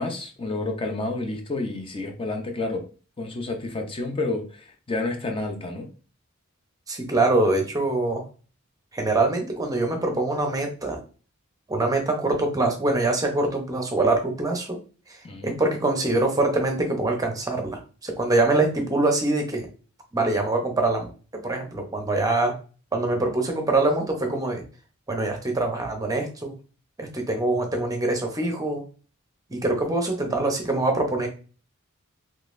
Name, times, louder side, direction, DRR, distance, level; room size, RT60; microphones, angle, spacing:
voice 1, 0.0-2.8 3.2-5.8 15.2-15.6, left 2 dB, 25° left, 4 dB, 0.6 m, -30 dB
voice 2, 6.9-8.2 8.9-11.0 11.7-14.8 15.4-19.7 20.1-21.1 21.4-22.5 22.9-24.6 25.1-26.5 27.0-28.8 29.5-31.3, right 2 dB, 15° right, 3 dB, 0.7 m, -24 dB
3.8 x 3.1 x 2.5 m, 0.37 s
head